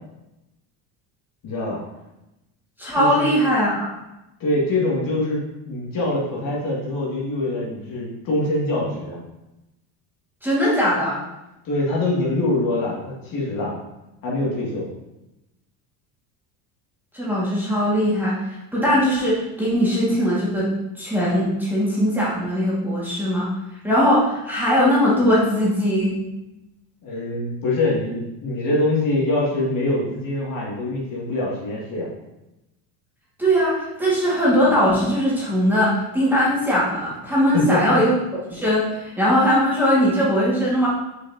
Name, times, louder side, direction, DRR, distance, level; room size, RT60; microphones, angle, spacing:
voice 1, 1.4-1.8 3.0-3.3 4.4-9.2 11.6-13.7 14.2-14.9 27.0-32.1 37.5-38.0, left 2 dB, 45° left, -5 dB, 2.3 m, -24 dB
voice 2, 2.8-3.9 10.4-11.2 17.1-18.4 18.7-20.7 20.9-23.5 23.8-26.2 33.4-38.1 38.5-40.9, equal, 5° right, -8 dB, 1.8 m, -20 dB
6.3 x 5.8 x 2.8 m, 0.94 s
supercardioid pair, 120°, 46 cm